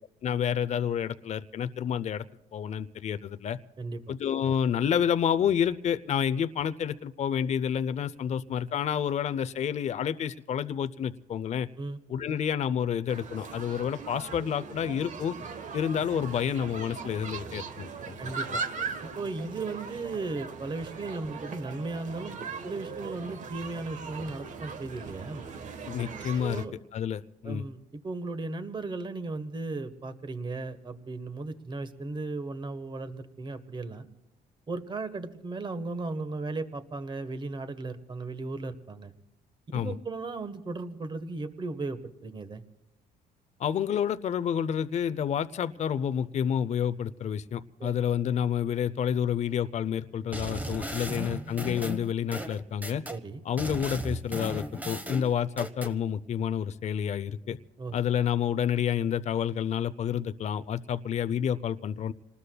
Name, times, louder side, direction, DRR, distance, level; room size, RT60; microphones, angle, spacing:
voice 1, 0.2-2.2 2.5-3.6 4.1-11.7 12.1-15.3 15.7-18.3 25.9-26.6 26.9-27.6 39.7-39.9 43.6-53.0 53.4-57.6 57.9-62.1, left 8 dB, 45° left, 12 dB, 0.6 m, -29 dB
voice 2, 3.8-4.1 11.8-12.0 18.2-18.6 19.0-22.4 22.6-25.4 26.4-26.7 27.4-34.1 34.7-39.1 39.7-42.6 47.8-47.9 51.0-51.1 53.1-53.4 57.8-58.0, right 3 dB, 30° right, 10 dB, 1.3 m, -36 dB
sound 1, 13.1-26.7, right 5 dB, 45° right, 1.3 m, -39 dB
sound 2, 50.3-53.2 53.6-55.9, right 1 dB, 10° right, 1.2 m, -36 dB
28.0 x 19.5 x 2.3 m, 1.0 s
cardioid pair, 110°, 17 cm